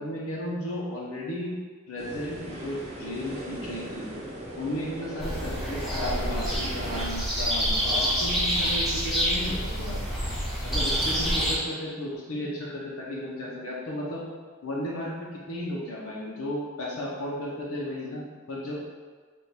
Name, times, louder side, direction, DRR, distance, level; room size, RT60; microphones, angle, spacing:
voice 1, 0.0-1.6 1.9-4.1 4.6-10.0 10.6-14.2 14.6-18.7, left 1 dB, 90° left, -4 dB, 0.9 m, -34 dB
sound 1, 2.0-7.1, right 1 dB, 30° right, 0.7 m, -38 dB
sound 2, 5.2-11.6, equal, ahead, 0.9 m, -27 dB
3.5 x 2.6 x 4.3 m, 1.5 s
head